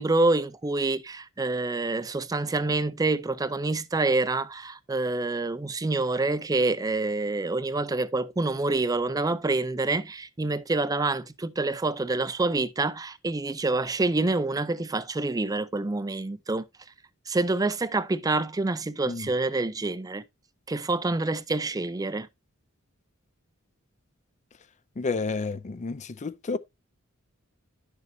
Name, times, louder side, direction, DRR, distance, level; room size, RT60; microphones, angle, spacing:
voice 1, 0.0-16.6 17.3-20.2 20.7-22.3, right 2 dB, 15° right, 0.4 m, -27 dB
voice 2, 25.0-26.6, left 4 dB, 35° left, 0.4 m, -30 dB
11.0 x 6.8 x 2.7 m
head